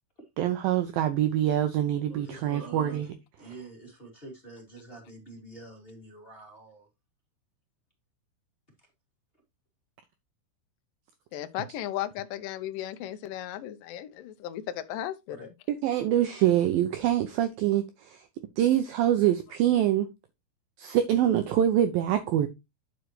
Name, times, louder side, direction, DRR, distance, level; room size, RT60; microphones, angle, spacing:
voice 1, 0.4-3.1 15.7-18.2 18.6-20.1 20.8-22.5, right 11 dB, 85° right, 2.0 m, -25 dB
voice 2, 2.1-3.0 3.4-6.9 15.3-15.5, right 2 dB, 20° left, 1.5 m, -46 dB
voice 3, 11.3-15.5, left 12 dB, 90° left, 1.9 m, -35 dB
9.4 x 6.2 x 3.1 m
omnidirectional pair, 5.0 m